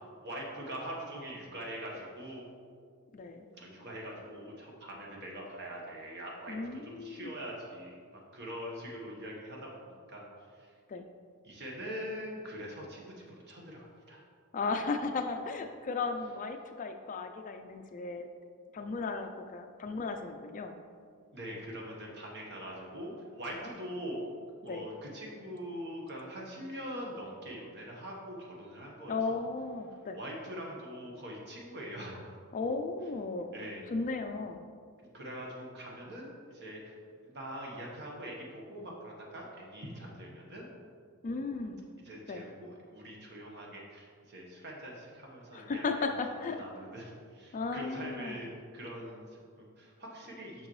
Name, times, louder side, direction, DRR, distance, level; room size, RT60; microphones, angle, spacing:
voice 1, 0.0-2.5 3.5-10.7 11.4-14.2 21.3-24.4 24.6-29.4 29.9-32.3 33.5-33.8 35.0-36.9 37.2-40.7 42.0-50.7, equal, 50° right, -2 dB, 1.2 m, -43 dB
voice 2, 3.1-3.5 6.5-7.3 10.9-11.1 14.5-18.3 18.7-20.7 24.6-24.9 29.1-30.2 32.5-33.5 33.9-34.6 41.2-41.8 42.3-42.5 45.5-46.6 47.5-48.4, left 3 dB, 35° left, 6 dB, 0.3 m, -35 dB
6.4 x 6.0 x 3.1 m, 2.1 s
head